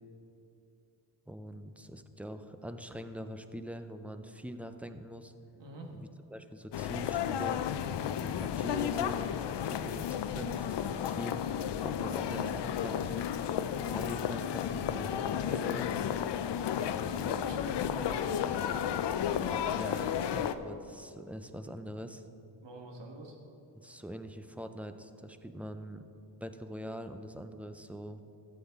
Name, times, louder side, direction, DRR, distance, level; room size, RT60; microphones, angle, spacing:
voice 1, 1.3-5.3 5.9-7.6 8.2-9.2 9.6-13.3 13.9-16.0 19.8-22.2 23.7-26.1 26.4-28.2, equal, 5° right, 8 dB, 0.3 m, -43 dB
voice 2, 5.6-6.0 17.0-19.0 22.6-23.4, right 2 dB, 70° right, 1 dB, 1.5 m, -46 dB
sound 1, 6.7-20.5, left 9 dB, 70° left, 0.5 m, -33 dB
13.0 x 7.2 x 3.5 m, 2.7 s
wide cardioid pair, 115°, 44 cm